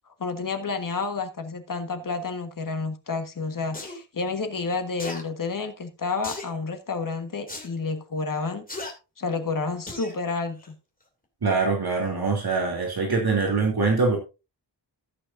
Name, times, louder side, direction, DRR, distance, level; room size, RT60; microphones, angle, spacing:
voice 1, 0.1-8.6 9.2-10.7, left 4 dB, 50° left, 1.5 m, -30 dB
sound 1, 3.7-4.0 5.0-5.2 6.2-6.5 7.5-7.7 8.7-8.9 9.9-10.1 10.6-10.7, left 2 dB, 20° left, 2.7 m, -36 dB
voice 2, 11.4-14.2, right 4 dB, 60° right, 3.0 m, -23 dB
14.5 x 8.6 x 2.7 m
wide cardioid pair, 140°, 42 cm